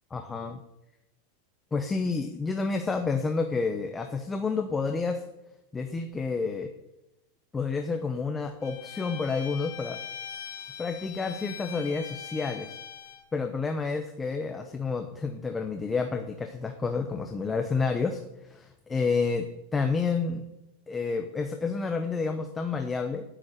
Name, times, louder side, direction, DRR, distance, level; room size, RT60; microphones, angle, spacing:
voice 1, 0.1-0.6 1.7-5.2 5.7-6.7 7.5-10.0 10.8-12.7 13.3-20.4 20.9-23.2, left 4 dB, 10° left, 6 dB, 0.8 m, -29 dB
Bowed string instrument, 8.6-13.3, left 9 dB, 70° left, 2.7 m, -41 dB
10.0 x 9.5 x 9.1 m, 0.91 s
supercardioid pair, 175°, 0 cm